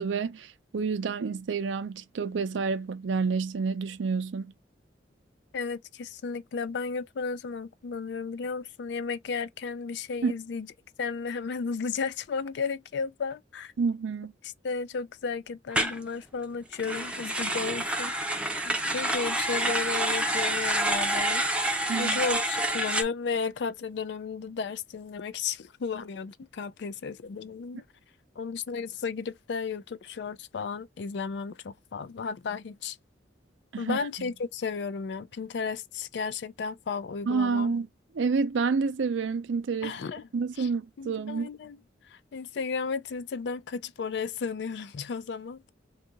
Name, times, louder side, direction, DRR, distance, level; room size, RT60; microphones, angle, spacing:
voice 1, 0.0-4.5 10.2-10.3 13.8-14.3 21.9-22.2 33.7-34.0 37.3-37.9 38.1-39.9 40.3-41.5, right 5 dB, 90° right, 0.5 m, -29 dB
voice 2, 5.5-10.7 11.0-13.7 14.4-27.8 28.4-33.0 33.8-37.7 39.8-40.3 40.6-40.7 41.0-41.8 42.0-45.6, left 5 dB, 70° left, 0.4 m, -34 dB
sound 1, 15.7-16.0 16.7-23.0, right 1 dB, 5° right, 0.5 m, -28 dB
2.7 x 2.4 x 3.8 m
head